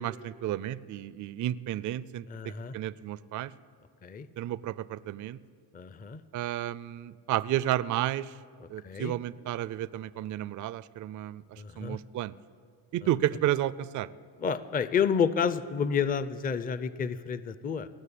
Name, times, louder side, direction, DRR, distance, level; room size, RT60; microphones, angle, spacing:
voice 1, 0.0-2.3 2.7-3.5 4.4-5.4 6.3-8.3 8.7-12.3 12.9-14.1, right 13 dB, 45° right, 18 dB, 0.4 m, -32 dB
voice 2, 2.3-2.7 4.0-4.3 5.7-6.2 8.6-9.1 11.6-12.0 14.4-17.9, left 7 dB, 20° left, 15 dB, 0.5 m, -30 dB
18.5 x 6.4 x 8.5 m, 2.2 s
cardioid pair, 85°, 46 cm